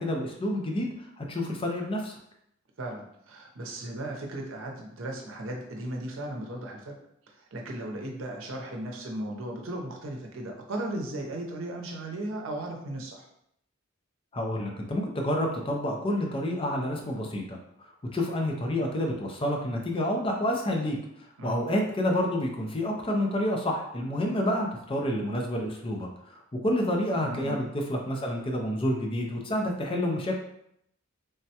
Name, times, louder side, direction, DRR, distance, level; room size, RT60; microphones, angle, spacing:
voice 1, 0.0-2.1 14.3-21.0 21.4-30.4, left 1 dB, 25° left, 1 dB, 0.5 m, -29 dB
voice 2, 2.8-6.9 7.5-13.3 21.4-21.6 27.2-27.6, right 1 dB, 80° right, 1 dB, 0.6 m, -36 dB
3.4 x 2.1 x 2.8 m, 0.74 s
head